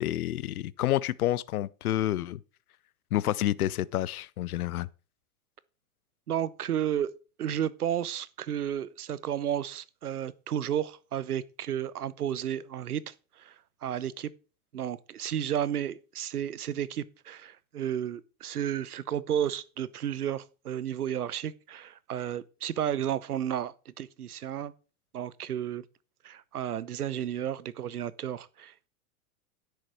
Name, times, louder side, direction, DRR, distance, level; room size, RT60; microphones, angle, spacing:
voice 1, 0.0-2.4 3.1-4.9, left 13 dB, 75° left, 0.7 m, -29 dB
voice 2, 6.3-7.1 7.4-13.5 13.8-14.3 14.7-24.7 25.1-25.8 26.2-28.9, right 10 dB, 90° right, 0.8 m, -32 dB
10.5 x 8.1 x 4.4 m
hypercardioid pair, 100°, 44 cm